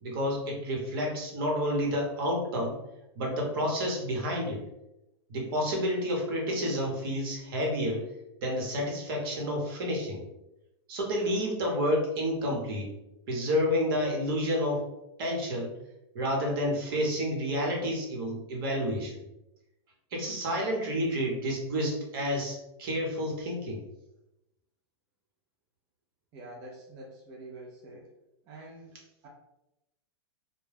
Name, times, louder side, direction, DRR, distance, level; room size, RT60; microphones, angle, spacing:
voice 1, 0.0-2.8 3.1-4.6 5.3-8.0 8.4-10.2 10.9-12.9 13.3-14.8 15.2-15.7 16.1-19.2 20.1-23.8, equal, 55° right, 0 dB, 0.9 m, -30 dB
voice 2, 26.3-28.1 28.5-29.3, right 2 dB, 30° right, -3 dB, 0.4 m, -47 dB
2.3 x 2.1 x 3.3 m, 0.89 s
supercardioid pair, 155°, 14 cm